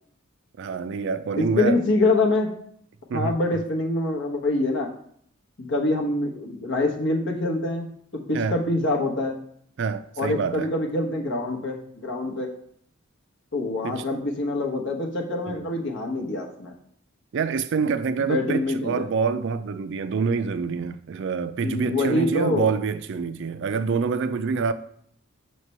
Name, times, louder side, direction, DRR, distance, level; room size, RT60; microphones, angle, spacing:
voice 1, 0.6-1.8 3.1-3.6 8.3-8.6 9.8-10.7 13.8-14.0 15.5-15.6 17.3-24.7, right 5 dB, 60° right, 0.4 m, -26 dB
voice 2, 1.4-2.5 3.1-4.9 5.6-7.9 8.3-9.4 10.2-12.5 13.5-16.7 18.3-19.1 21.6-22.7, left 2 dB, 60° left, 1.0 m, -25 dB
5.8 x 3.2 x 5.4 m
head